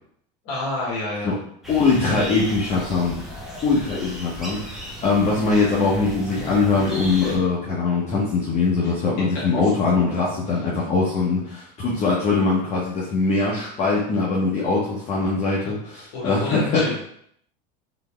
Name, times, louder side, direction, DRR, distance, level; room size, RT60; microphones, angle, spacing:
voice 1, 0.4-1.3 8.8-8.9 16.1-16.9, left 2 dB, 65° left, -5 dB, 1.6 m, -28 dB
sound 1, 1.6-7.4, equal, ahead, 0.9 m, -36 dB
voice 2, 1.7-3.2 3.6-16.9, left 3 dB, 30° left, -6 dB, 1.0 m, -22 dB
4.1 x 3.3 x 3.4 m, 0.68 s
supercardioid pair, 140°, 21 cm